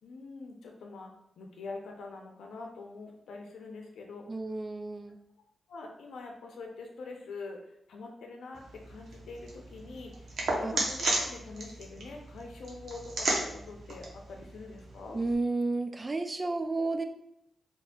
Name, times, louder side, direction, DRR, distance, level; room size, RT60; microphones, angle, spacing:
voice 1, 0.0-4.2 5.7-15.2, left 3 dB, 85° left, 2 dB, 0.6 m, -44 dB
voice 2, 4.3-5.2 10.6-10.7 15.1-17.1, right 3 dB, 30° right, 7 dB, 0.4 m, -31 dB
sound 1, 8.5-15.3, right 2 dB, 75° right, 0.9 m, -35 dB
4.3 x 3.0 x 2.3 m, 0.76 s
cardioid pair, 75°, 0 cm